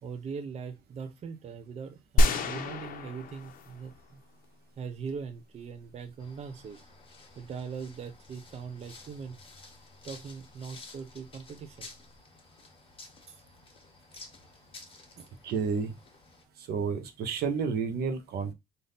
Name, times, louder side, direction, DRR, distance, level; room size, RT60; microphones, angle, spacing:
voice 1, 0.0-4.2 4.8-6.8 7.4-9.4 10.0-11.9 13.3-13.4 14.2-14.6 15.2-15.3, right 6 dB, 40° right, 0.6 m, -41 dB
sound 1, 2.2-4.1 4.4-4.5, left 1 dB, 55° left, 0.7 m, -27 dB
sound 2, 6.2-16.4, left 3 dB, 30° left, 1.3 m, -52 dB
voice 2, 15.4-15.9 16.7-18.5, right 5 dB, 70° right, 0.9 m, -30 dB
3.5 x 2.7 x 3.9 m
cardioid pair, 110°, 17 cm